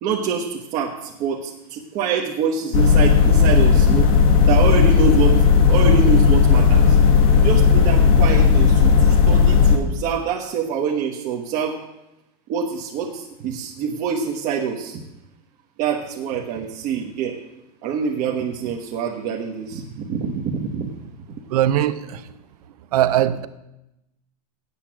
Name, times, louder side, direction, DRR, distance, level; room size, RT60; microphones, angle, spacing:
voice 1, 0.0-4.1 4.5-7.0 7.4-11.8 12.5-15.0 15.8-17.4 17.8-20.9, right 6 dB, 40° right, -1 dB, 1.2 m, -25 dB
sound 1, 2.7-9.8, left 6 dB, 60° left, 1.6 m, -14 dB
voice 2, 21.5-22.2 22.9-23.5, right 12 dB, 75° right, 13 dB, 0.8 m, -20 dB
8.4 x 8.3 x 7.4 m, 0.91 s
supercardioid pair, 135°, 20 cm